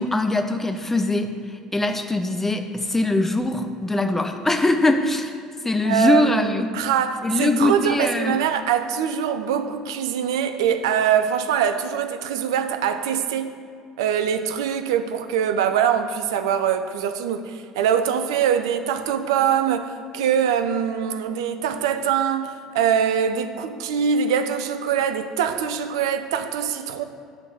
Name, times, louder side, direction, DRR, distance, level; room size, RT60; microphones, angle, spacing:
voice 1, 0.0-5.4 5.6-6.7 7.2-8.4, left 2 dB, 10° left, 0.7 m, -22 dB
voice 2, 5.8-13.5 14.0-27.0, right 8 dB, 70° right, 0.5 m, -23 dB
9.7 x 4.0 x 6.8 m
figure-of-eight pair, 60°, 3 cm